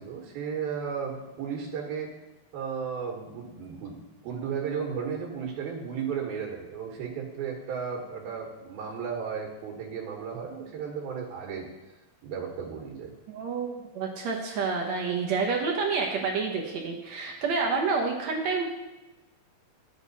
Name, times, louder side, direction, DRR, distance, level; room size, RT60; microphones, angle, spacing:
voice 1, 0.0-2.1 2.5-11.7 12.2-13.1, right 6 dB, 85° right, 0 dB, 3.3 m, -34 dB
voice 2, 13.3-18.7, right 4 dB, 65° right, 0 dB, 1.8 m, -28 dB
11.5 x 8.3 x 4.1 m, 1.1 s
omnidirectional pair, 4.2 m